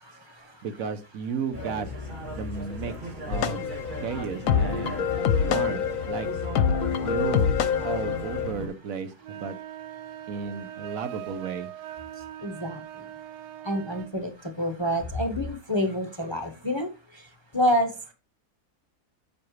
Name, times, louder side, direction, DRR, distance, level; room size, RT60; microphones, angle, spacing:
voice 1, 0.6-1.9 2.3-2.9 3.3-3.6 4.0-5.1 5.4-6.3 7.0-7.6 7.8-9.6 10.3-11.7, right 6 dB, 65° right, 11 dB, 1.2 m, -33 dB
sound 1, 1.5-8.7, left 1 dB, 30° right, 2.4 m, -36 dB
sound 2, 3.3-8.5, left 7 dB, 65° left, 1.0 m, -26 dB
sound 3, 9.2-14.2, right 12 dB, 85° right, 1.2 m, -41 dB
voice 2, 12.4-12.8 13.6-17.3 17.5-17.9, equal, 20° left, 6 dB, 0.8 m, -28 dB
9.7 x 7.1 x 3.1 m, 0.29 s
omnidirectional pair, 1.7 m